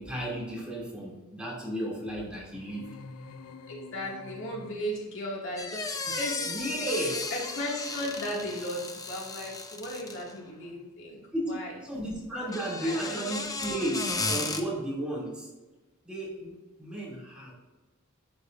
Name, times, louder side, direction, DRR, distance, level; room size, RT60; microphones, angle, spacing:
voice 1, 0.0-2.9 6.0-6.2 6.4-7.2 11.3-15.5 16.0-17.5, right 1 dB, 5° right, -6 dB, 2.7 m, -34 dB
sound 1, 2.5-5.2, left 4 dB, 85° left, 0.6 m, -47 dB
voice 2, 3.7-6.9 7.3-11.7 12.8-13.1, left 1 dB, 60° left, -3 dB, 2.2 m, -36 dB
sound 2, 5.6-10.4 12.4-14.6, left 3 dB, 15° left, 0.7 m, -35 dB
11.5 x 8.0 x 2.6 m, 1.2 s
head